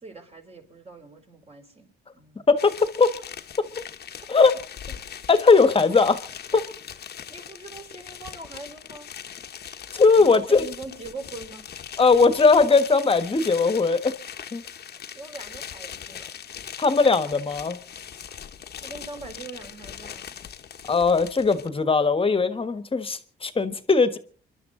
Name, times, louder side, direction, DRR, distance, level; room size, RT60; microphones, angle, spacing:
voice 1, 0.0-1.9 2.1-2.5 7.3-9.1 10.2-11.6 11.9-12.0 14.9-16.3 18.8-20.2, right 3 dB, 30° right, 4.5 m, -41 dB
voice 2, 2.5-3.1 3.6-3.7 4.3-4.5 5.3-6.2 6.5-6.6 9.9-10.6 12.0-14.1 14.5-14.6 16.8-17.8 20.9-24.2, left 4 dB, 25° left, 1.5 m, -19 dB
sound 1, 2.6-21.7, left 8 dB, 55° left, 1.2 m, -40 dB
28.0 x 12.0 x 3.9 m
cardioid pair, 90°, 20 cm